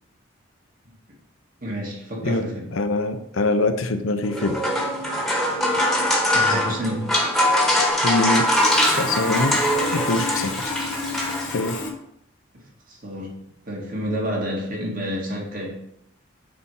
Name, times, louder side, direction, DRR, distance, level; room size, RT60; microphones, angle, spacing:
voice 1, 1.6-2.6 6.3-7.2 12.5-15.8, equal, 45° right, -2 dB, 1.9 m, -29 dB
voice 2, 2.2-4.6 8.0-8.5 9.0-9.6 9.9-10.7 11.4-11.8, left 2 dB, 80° left, 8 dB, 0.7 m, -24 dB
sound 1, 4.2-11.9, left 1 dB, ahead, 1.3 m, -22 dB
Sawing, 8.3-11.9, left 5 dB, 40° left, 1.2 m, -33 dB
6.7 x 4.4 x 5.5 m, 0.75 s
head